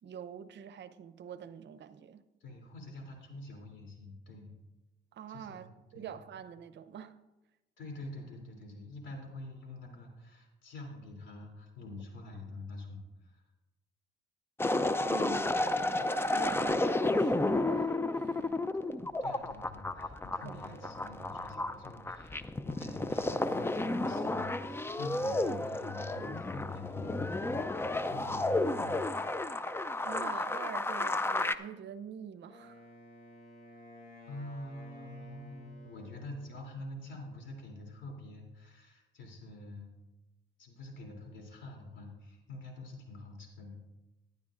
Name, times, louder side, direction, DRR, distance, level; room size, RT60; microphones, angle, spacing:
voice 1, 0.0-2.2 5.1-7.2 15.1-18.6 20.4-20.9 30.0-32.9, right 8 dB, 65° right, 0.7 m, -46 dB
voice 2, 2.4-4.5 5.3-5.7 5.9-6.1 7.8-13.4 18.2-18.5 19.2-29.1 33.7-33.8 34.3-39.9 40.6-43.8, left 2 dB, 75° left, 3.1 m, -46 dB
sound 1, 14.6-31.6, left 2 dB, 10° left, 0.5 m, -32 dB
Wind instrument woodwind instrument, 32.5-36.6, left 1 dB, 50° left, 3.5 m, -54 dB
17.0 x 11.0 x 2.5 m
cardioid pair, 95°, 20 cm